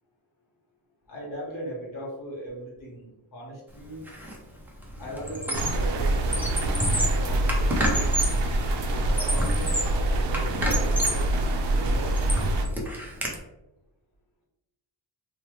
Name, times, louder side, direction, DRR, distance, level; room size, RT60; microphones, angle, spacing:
voice 1, 1.1-4.0 5.0-6.5 6.9-8.0 9.0-11.4 11.7-12.1, equal, 45° left, -3 dB, 1.3 m, -38 dB
Squeak, 4.1-4.4 4.7-5.9 6.2-8.5 9.0-10.0 10.3-11.3 11.8-13.3, right 1 dB, 5° right, 0.4 m, -29 dB
sound 1, 5.5-12.7, right 1 dB, 65° right, 0.6 m, -25 dB
3.0 x 2.2 x 3.0 m, 0.95 s
wide cardioid pair, 135°, 47 cm